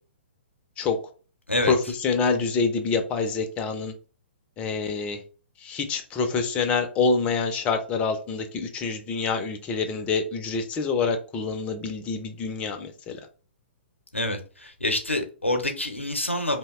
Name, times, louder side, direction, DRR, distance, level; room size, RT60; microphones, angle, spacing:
voice 1, 1.7-3.9 4.6-5.2 5.6-13.2, left 4 dB, 20° left, 7 dB, 0.3 m, -26 dB
voice 2, 14.1-16.6, left 1 dB, 90° left, 5 dB, 0.6 m, -27 dB
2.7 x 2.0 x 2.3 m, 0.37 s
figure-of-eight pair, 120°, 7 cm